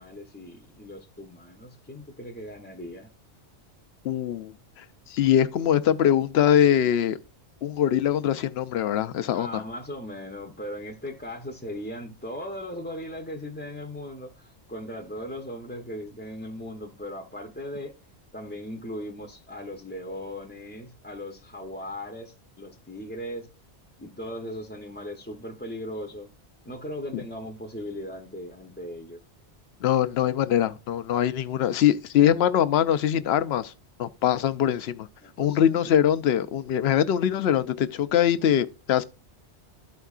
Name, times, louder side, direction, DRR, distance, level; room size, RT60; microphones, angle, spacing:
voice 1, 0.0-3.1 9.3-17.9 18.3-23.5 24.0-26.3 26.6-29.2 35.2-35.9, left 1 dB, 10° left, 0.5 m, -38 dB
voice 2, 4.0-7.2 7.6-9.6 29.8-33.7 34.0-35.1 35.4-39.0, left 10 dB, 70° left, 0.8 m, -23 dB
13.0 x 4.5 x 2.4 m
omnidirectional pair, 1.1 m